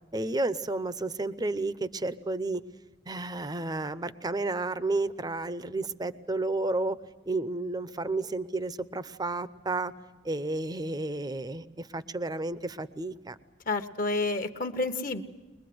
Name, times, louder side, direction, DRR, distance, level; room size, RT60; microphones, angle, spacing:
voice 1, 0.1-2.6 3.1-7.0 7.3-9.9 10.2-13.4, right 2 dB, 20° right, 14 dB, 0.7 m, -31 dB
voice 2, 13.7-15.2, left 3 dB, 50° left, 8 dB, 1.1 m, -29 dB
22.5 x 21.0 x 7.8 m, 1.2 s
head